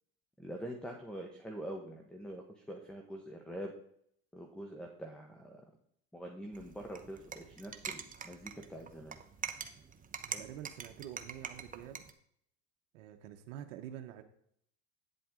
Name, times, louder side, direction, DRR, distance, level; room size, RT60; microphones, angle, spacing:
voice 1, 0.4-3.7 4.3-5.6 6.1-9.1, right 1 dB, ahead, 3 dB, 1.2 m, -45 dB
sound 1, 6.5-12.1, right 6 dB, 20° right, 0.8 m, -45 dB
voice 2, 10.2-12.1 12.9-14.2, right 11 dB, 80° right, 5 dB, 1.0 m, -47 dB
9.1 x 7.8 x 3.7 m, 0.68 s
supercardioid pair, 105°, 38 cm